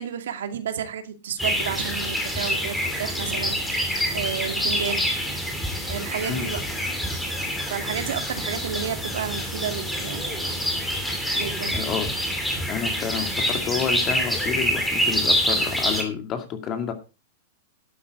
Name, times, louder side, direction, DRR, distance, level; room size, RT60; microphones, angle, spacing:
voice 1, 0.0-5.1 5.9-6.6 7.7-10.6 11.4-11.9, right 8 dB, 90° right, 7 dB, 2.1 m, -32 dB
sound 1, 1.4-16.0, equal, ahead, 2.8 m, -26 dB
voice 2, 11.7-12.1 12.7-16.9, left 7 dB, 30° left, 6 dB, 2.2 m, -29 dB
12.0 x 8.6 x 4.8 m, 0.31 s
supercardioid pair, 155°, 0 cm